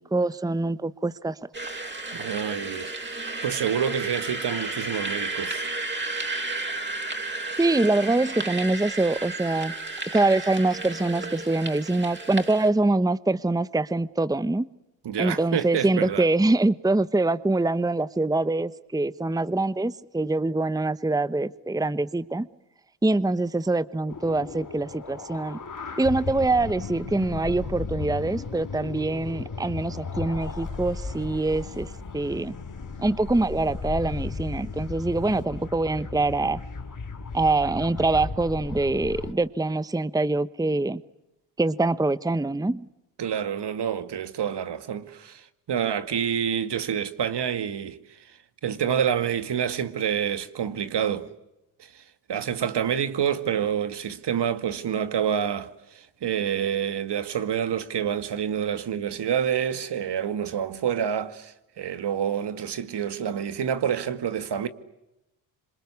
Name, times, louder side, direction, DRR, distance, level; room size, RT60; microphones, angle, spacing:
voice 1, 0.0-1.4 7.6-9.7 10.1-14.7 15.2-22.5 23.0-25.6 26.0-32.5 33.0-36.6 37.3-41.0 41.6-42.9, right 2 dB, 10° right, 1.0 m, -24 dB
sound 1, 1.5-12.7, right 2 dB, 25° right, 5.6 m, -33 dB
voice 2, 2.1-5.7 15.0-16.2 43.2-45.4 45.7-48.0 48.6-51.3 52.3-55.7 55.9-64.7, right 8 dB, 60° right, 2.2 m, -27 dB
sound 2, 24.1-39.3, left 4 dB, 45° left, 5.4 m, -36 dB
27.0 x 26.5 x 8.3 m
supercardioid pair, 45°, 45 cm